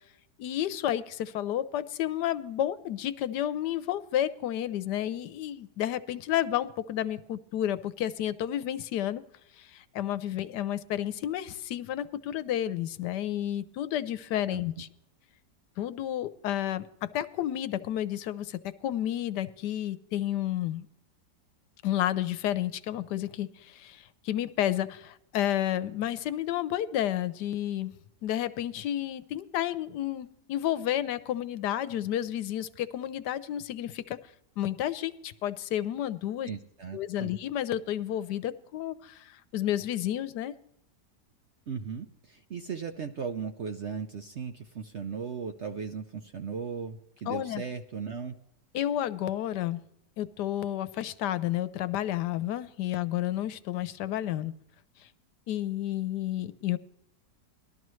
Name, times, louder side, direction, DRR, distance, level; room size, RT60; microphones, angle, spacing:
voice 1, 0.4-9.2 9.6-14.9 15.8-20.9 21.8-27.9 28.2-34.2 34.6-36.5 36.9-40.5 47.3-47.6 48.7-49.8 50.2-54.5 55.5-56.8, left 12 dB, 75° left, 15 dB, 1.2 m, -31 dB
voice 2, 36.4-37.3 41.7-48.3, right 6 dB, 60° right, 6 dB, 0.7 m, -37 dB
19.5 x 12.5 x 3.1 m, 0.78 s
omnidirectional pair, 1.8 m